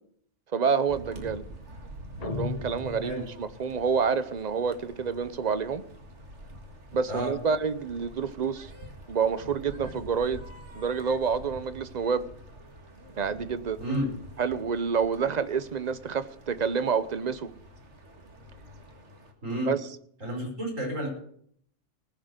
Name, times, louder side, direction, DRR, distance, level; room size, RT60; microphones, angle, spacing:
voice 1, 0.5-1.4 2.2-5.8 6.9-8.7 9.1-10.4 10.7-12.3 13.2-13.8 14.4-17.5 19.7-19.8, right 6 dB, 40° right, 13 dB, 0.8 m, -28 dB
sound 1, 0.9-19.3, right 1 dB, 65° right, 2.3 m, -47 dB
sound 2, 2.2-3.7, left 6 dB, 40° left, 0.6 m, -36 dB
voice 2, 20.2-21.1, right 1 dB, 85° right, -1 dB, 5.8 m, -30 dB
19.0 x 6.5 x 7.9 m, 0.65 s
omnidirectional pair, 1.3 m